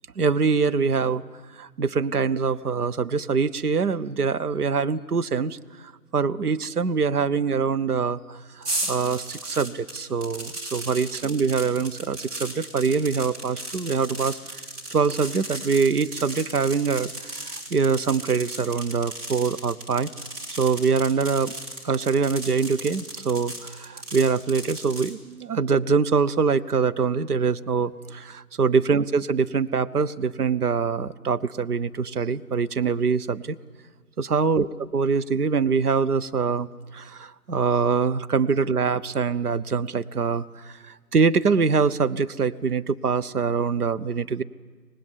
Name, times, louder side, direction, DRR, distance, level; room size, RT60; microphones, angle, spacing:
voice 1, 0.2-1.2 1.6-5.6 6.1-14.4 14.9-20.1 20.6-21.5 21.8-33.6 34.2-34.7 34.9-36.7 36.9-40.7 41.1-44.4, right 5 dB, 75° right, 12 dB, 0.9 m, -24 dB
sound 1, 8.6-25.1, right 1 dB, 25° right, 2.6 m, -36 dB
25.0 x 19.0 x 8.3 m, 1.5 s
figure-of-eight pair, 135°, 46 cm